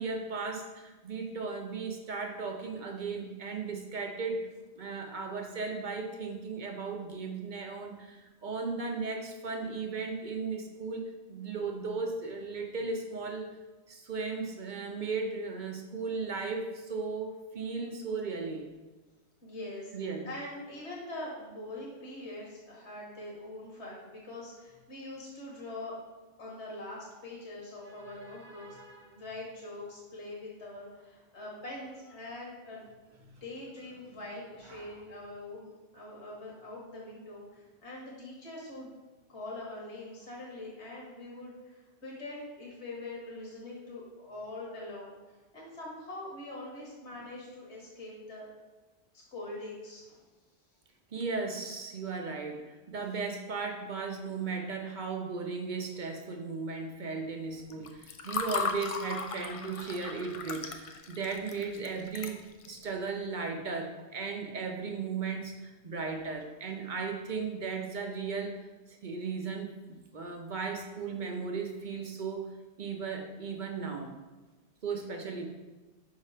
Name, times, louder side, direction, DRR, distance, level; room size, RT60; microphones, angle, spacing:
voice 1, 0.0-4.5 4.8-13.5 13.9-18.7 19.9-20.3 27.8-29.1 33.2-33.4 34.7-34.9 51.1-62.4 62.6-68.5 68.9-72.5 72.8-74.2 74.8-75.5, right 4 dB, 50° right, 3 dB, 0.7 m, -36 dB
voice 2, 19.4-19.9 20.2-25.9 26.4-28.7 29.0-32.8 33.4-38.9 39.3-45.2 45.5-48.5 49.1-50.2, left 2 dB, 75° left, -4 dB, 1.8 m, -43 dB
Water / Fill (with liquid), 57.7-62.8, left 5 dB, 60° left, 0.3 m, -37 dB
5.4 x 3.7 x 4.9 m, 1.2 s
omnidirectional pair, 1.2 m